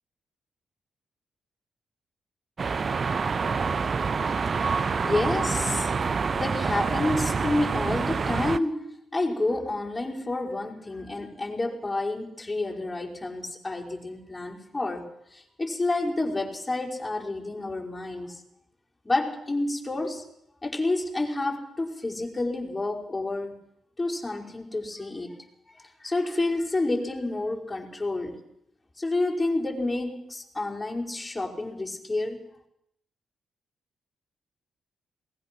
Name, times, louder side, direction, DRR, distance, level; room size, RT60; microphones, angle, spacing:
sound 1, 2.6-8.6, right 5 dB, 45° right, 0.7 m, -27 dB
voice 1, 5.0-5.9 6.3-18.4 19.0-20.2 20.6-23.6 24.0-25.4 25.7-28.4 29.0-32.4, left 2 dB, 20° left, -1 dB, 5.3 m, -29 dB
21.0 x 20.0 x 6.2 m, 0.76 s
cardioid pair, 65°, 0 cm